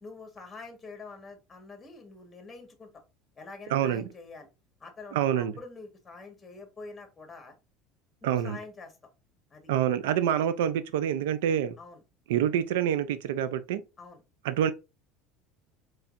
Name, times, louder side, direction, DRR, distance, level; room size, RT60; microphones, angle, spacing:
voice 1, 0.0-2.9 3.4-4.5 4.8-7.5 8.2-9.0 9.5-9.7 11.8-12.0 14.0-14.2, left 3 dB, 20° left, 1.5 m, -46 dB
voice 2, 3.7-4.1 5.1-5.5 8.2-8.6 9.7-11.8 12.3-13.8 14.4-14.7, right 10 dB, 85° right, 0.5 m, -26 dB
4.4 x 3.2 x 2.5 m
supercardioid pair, 100°, 0 cm